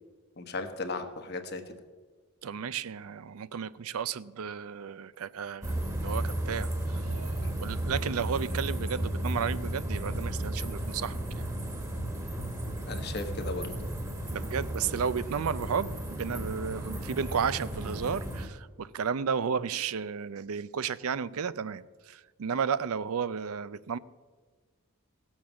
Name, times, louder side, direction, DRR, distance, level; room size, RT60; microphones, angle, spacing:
voice 1, 0.4-1.6 7.4-7.5 12.9-13.7, left 3 dB, 45° left, 1.2 m, -36 dB
voice 2, 2.4-5.7 6.0-11.5 14.3-24.0, right 6 dB, 75° right, 0.5 m, -33 dB
sound 1, 5.6-18.5, right 1 dB, 15° right, 1.4 m, -34 dB
17.0 x 7.2 x 7.2 m
head